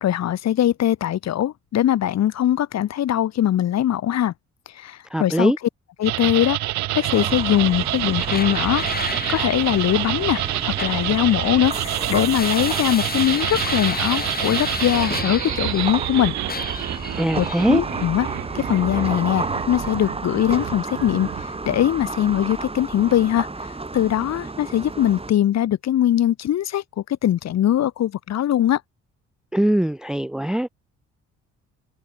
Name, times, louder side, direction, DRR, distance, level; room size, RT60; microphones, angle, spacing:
voice 1, 0.0-4.3 4.7-5.5 6.0-6.6 6.9-8.9 9.3-16.3 16.9-17.1 17.3-18.3 18.5-23.5 23.9-26.8 27.2-28.8, left 11 dB, 60° left, 1.1 m, -21 dB
voice 2, 5.1-5.6 17.1-17.8 29.5-30.7, right 1 dB, ahead, 0.6 m, -21 dB
sound 1, 6.0-21.6, right 16 dB, 70° right, 0.5 m, -27 dB
sound 2, 7.1-25.3, right 3 dB, 20° right, 4.3 m, -33 dB
sound 3, 8.1-16.1 16.5-17.7, left 4 dB, 30° left, 4.4 m, -32 dB
cardioid pair, 90°, 30 cm